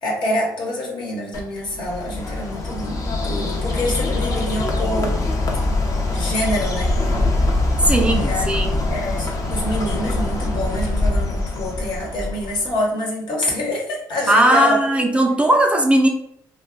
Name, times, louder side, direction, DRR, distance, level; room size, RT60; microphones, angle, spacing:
voice 1, 0.0-3.0 3.2-5.2 6.1-6.9 8.1-14.8, left 1 dB, 65° left, -3 dB, 1.1 m, -26 dB
Bird, 1.3-12.7, left 2 dB, 40° left, 0.7 m, -23 dB
voice 2, 7.8-8.7 14.3-16.1, right 1 dB, 15° right, 2 dB, 0.4 m, -17 dB
2.3 x 2.2 x 3.7 m, 0.72 s
cardioid pair, 80°, 8 cm